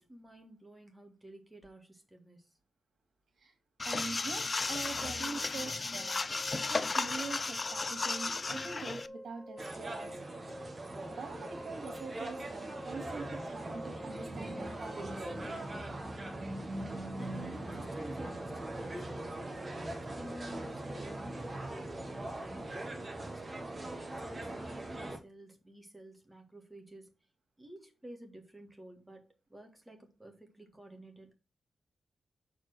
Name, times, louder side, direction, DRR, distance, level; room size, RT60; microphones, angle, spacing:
voice 1, 0.0-2.5 16.7-23.9 24.2-27.1 27.6-31.3, right 1 dB, 10° right, 1.8 m, -52 dB
sound 1, 3.8-9.1, left 3 dB, 30° left, 0.4 m, -34 dB
voice 2, 3.8-6.2 6.5-10.4 10.8-15.1, right 4 dB, 70° right, 2.5 m, -44 dB
sound 2, 5.7-15.5, equal, 5° left, 2.5 m, -50 dB
sound 3, 9.6-25.2, right 1 dB, 25° right, 1.5 m, -41 dB
6.6 x 4.5 x 6.1 m
wide cardioid pair, 160°, 0 cm